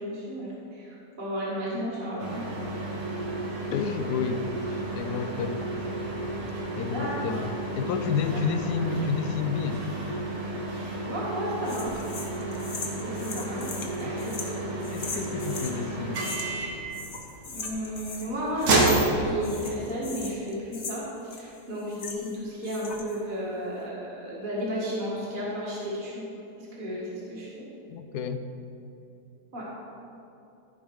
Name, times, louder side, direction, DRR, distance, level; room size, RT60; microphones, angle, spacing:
voice 1, 0.0-2.3 6.9-7.4 11.0-12.0 13.0-13.7 14.0-14.7 17.5-26.2 26.6-27.6 29.5-29.7, equal, 30° right, -6 dB, 1.9 m, -33 dB
sound 1, 2.2-19.9, right 2 dB, 70° right, 1.8 m, -31 dB
voice 2, 3.7-6.1 6.8-9.9 14.0-14.2 14.9-16.3 27.9-28.5, left 6 dB, 80° left, 9 dB, 1.1 m, -30 dB
sound 2, 11.7-15.8 16.1-16.7 16.9-18.3 18.6-19.2 19.4-22.4 22.6-23.2, left 4 dB, 45° left, 1.2 m, -39 dB
14.5 x 5.1 x 4.7 m, 2.8 s
omnidirectional pair, 1.7 m